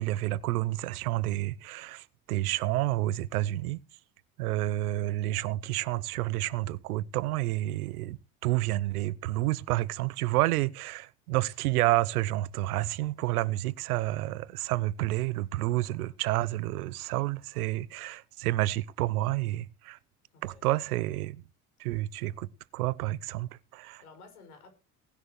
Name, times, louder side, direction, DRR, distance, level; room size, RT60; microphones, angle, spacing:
voice 1, 0.0-3.8 4.4-8.2 8.4-20.0 20.4-21.4 21.8-24.0, right 17 dB, 85° right, 0.8 m, -29 dB
voice 2, 15.7-16.1 20.3-20.8 23.8-24.7, left 4 dB, 85° left, 6.1 m, -55 dB
18.5 x 11.0 x 3.1 m
hypercardioid pair, 60°, 44 cm